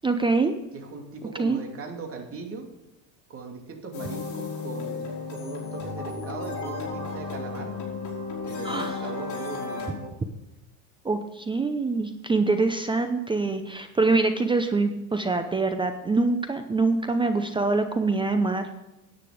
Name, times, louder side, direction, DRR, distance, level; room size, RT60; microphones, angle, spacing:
voice 1, 0.0-0.5 1.4-1.6 8.6-9.0 11.0-18.7, right 3 dB, 10° right, 8 dB, 0.7 m, -24 dB
voice 2, 0.7-2.7 3.3-7.8 8.4-10.2, right 4 dB, 30° right, 3 dB, 2.7 m, -39 dB
sound 1, 3.9-9.9, left 3 dB, 45° left, 4.5 m, -33 dB
10.5 x 9.1 x 5.0 m, 0.98 s
supercardioid pair, 120°, 42 cm